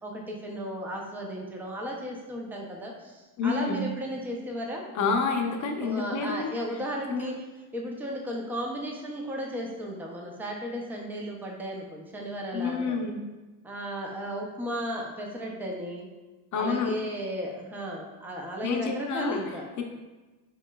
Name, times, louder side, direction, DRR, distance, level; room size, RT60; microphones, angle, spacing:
voice 1, 0.0-4.8 5.8-7.3 7.7-13.1 13.6-16.1 16.5-19.6, equal, 5° right, 0 dB, 0.4 m, -35 dB
voice 2, 3.4-3.8 4.9-6.5 7.1-7.3 12.5-13.2 16.5-16.9 18.6-19.4 19.8-19.9, left 4 dB, 40° left, 2 dB, 0.6 m, -28 dB
4.3 x 2.9 x 2.2 m, 1.2 s
supercardioid pair, 95°, 47 cm